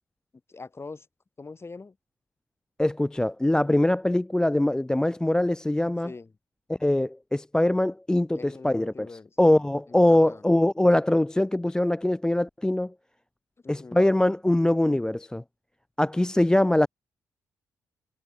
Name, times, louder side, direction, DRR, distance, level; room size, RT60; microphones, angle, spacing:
voice 1, 0.5-1.1 1.4-2.0 6.0-6.3 8.4-9.4 9.9-10.4 13.6-14.1, left 3 dB, 30° left, 4.1 m, -43 dB
voice 2, 2.8-6.1 6.7-9.1 9.4-12.9 13.7-15.4 16.0-16.9, left 1 dB, 10° left, 0.4 m, -23 dB
supercardioid pair, 50°, 8 cm